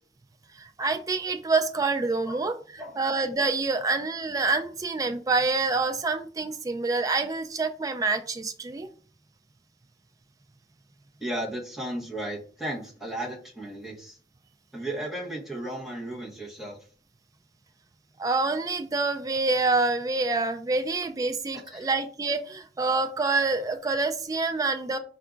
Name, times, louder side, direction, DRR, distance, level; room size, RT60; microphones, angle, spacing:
voice 1, 0.6-2.6 3.0-8.9 18.2-25.0, right 3 dB, 20° right, 7 dB, 0.3 m, -27 dB
voice 2, 11.2-14.2 14.7-16.8 21.7-21.9, right 1 dB, ahead, -5 dB, 1.1 m, -35 dB
4.6 x 2.4 x 3.7 m, 0.42 s
head